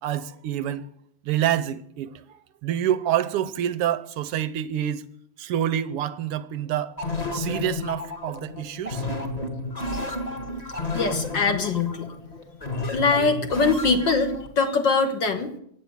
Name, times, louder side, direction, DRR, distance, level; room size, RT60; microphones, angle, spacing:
voice 1, 0.0-0.9 1.2-2.1 2.6-5.0 5.4-7.0 7.3-9.0, right 11 dB, 75° right, 1.4 m, -27 dB
sound 1, 7.0-14.5, left 2 dB, 15° left, 1.5 m, -31 dB
voice 2, 10.9-12.1 12.8-15.6, left 4 dB, 50° left, 1.6 m, -23 dB
16.5 x 9.0 x 9.8 m
omnidirectional pair, 3.3 m